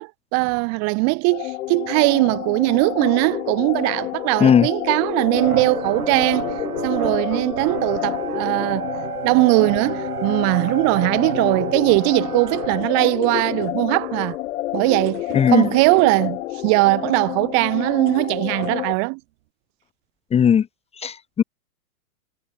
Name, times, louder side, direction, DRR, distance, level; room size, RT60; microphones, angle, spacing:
voice 1, 0.0-6.5 6.8-8.9 9.2-14.4 14.7-19.2, right 35 dB, 35° right, 1.7 m, -20 dB
sound 1, 1.3-18.9, left 15 dB, 55° left, 2.3 m, -29 dB
sound 2, 5.3-12.8, right 8 dB, 80° right, 7.9 m, -31 dB
sound 3, 12.5-16.4 17.4-17.5 17.9-18.3 18.6-19.5, right 19 dB, 50° right, 7.1 m, -42 dB
voice 2, 15.3-15.7 20.3-20.7 21.0-21.4, left 8 dB, 15° left, 1.3 m, -16 dB
hypercardioid pair, 130°, 45 cm